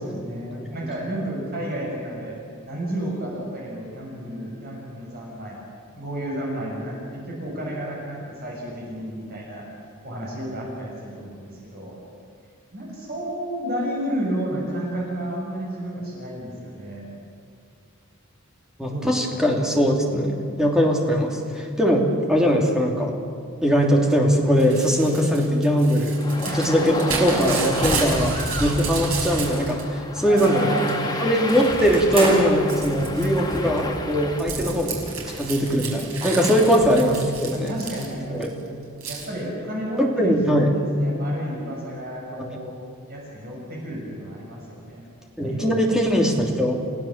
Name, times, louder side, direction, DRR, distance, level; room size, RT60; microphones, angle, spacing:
voice 1, 0.0-2.4 2.6-5.6 6.0-9.6 10.0-12.0 12.7-17.1 18.9-19.4 26.4-27.0 27.3-27.4 27.9-28.1 30.2-31.5 36.3-36.7 37.5-40.3 40.7-42.7 43.1-45.0 45.4-46.0, right 1 dB, 45° right, -3 dB, 6.2 m, -32 dB
voice 2, 18.8-23.1 23.6-26.2 26.6-30.8 31.2-35.0 35.4-37.7 38.3-38.5 40.0-40.7 42.4-42.5 45.4-46.8, equal, 5° right, 0 dB, 2.9 m, -21 dB
Crumpling crinkling / Tearing, 24.6-29.8 30.2-30.9 31.5-31.9 32.2-38.4 39.0-39.3, right 3 dB, 80° right, 5.9 m, -31 dB
sound 1, 26.1-34.4, left 2 dB, 20° left, 1.8 m, -32 dB
sound 2, 31.5-32.6 33.5-33.6 33.8-33.9 35.0-35.4 35.7-35.8 36.2-36.3, right 1 dB, 25° right, 6.5 m, -27 dB
29.5 x 16.0 x 7.4 m, 2.3 s
head